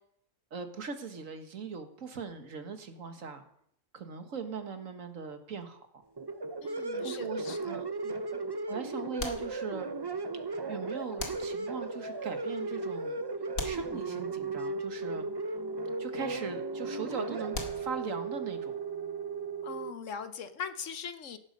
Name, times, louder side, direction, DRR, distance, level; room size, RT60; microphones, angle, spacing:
voice 1, 0.5-3.4 3.9-5.9 7.0-7.9 8.7-9.9 10.3-10.4 10.7-13.2 13.6-15.3 16.0-18.7, right 5 dB, 70° right, 7 dB, 1.9 m, -40 dB
sound 1, 6.2-19.9, right 3 dB, 30° right, 0.5 m, -36 dB
voice 2, 6.6-7.7 8.0-8.2 19.6-21.4, left 6 dB, 65° left, 11 dB, 1.2 m, -41 dB
sound 2, 7.4-7.9 9.2-10.1 11.2-12.0 13.5-14.6 17.5-18.4, left 3 dB, 85° left, 2.5 m, -42 dB
16.0 x 12.0 x 5.3 m, 0.70 s
omnidirectional pair, 1.4 m